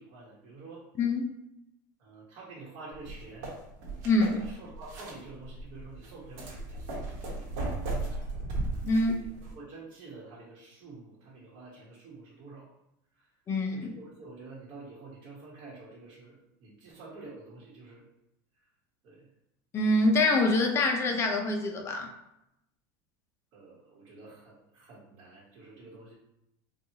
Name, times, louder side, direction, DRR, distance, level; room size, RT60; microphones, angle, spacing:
voice 1, 0.0-0.8 2.0-3.5 4.3-8.2 8.9-9.3 9.5-12.7 13.1-13.2 13.7-18.0 19.0-19.3 23.5-26.1, right 3 dB, 45° right, -6 dB, 1.1 m, -48 dB
voice 2, 1.0-1.3 4.0-4.4 8.8-9.1 13.5-13.9 19.7-22.1, left 2 dB, 25° left, 3 dB, 0.5 m, -25 dB
sound 1, 2.9-9.5, right 2 dB, 70° right, 1.1 m, -37 dB
4.3 x 2.3 x 2.8 m, 0.85 s
supercardioid pair, 150°, 11 cm